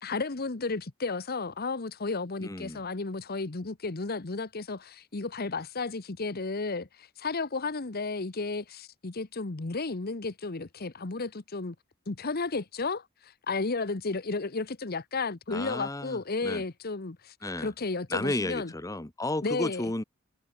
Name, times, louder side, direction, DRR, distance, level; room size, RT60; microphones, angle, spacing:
voice 1, 0.0-11.7 12.1-18.7 19.4-19.9, left 3 dB, 50° left, 1.0 m, -33 dB
voice 2, 2.4-2.8 15.5-16.6 17.4-17.7 18.1-20.0, left 2 dB, 15° left, 1.1 m, -33 dB
head